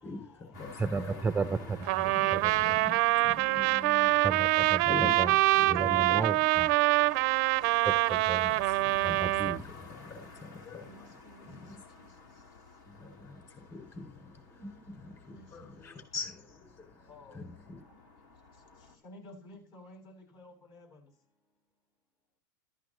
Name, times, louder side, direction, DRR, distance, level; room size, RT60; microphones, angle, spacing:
voice 1, 0.0-1.7 2.1-4.3 4.9-6.3 8.4-11.9 12.9-17.8, left 3 dB, 25° left, 7.2 m, -44 dB
sound 1, 0.5-19.0, left 4 dB, 70° left, 4.4 m, -51 dB
voice 2, 0.8-2.5 2.9-3.0 4.2-5.4 5.7-6.7 7.8-8.6 9.0-9.6, right 4 dB, 10° right, 0.6 m, -34 dB
Trumpet, 1.9-9.6, right 19 dB, 55° right, 0.5 m, -25 dB
voice 3, 19.0-20.0 20.3-20.9, left 1 dB, 45° left, 8.0 m, -51 dB
14.5 x 14.0 x 3.1 m
hypercardioid pair, 115°, 11 cm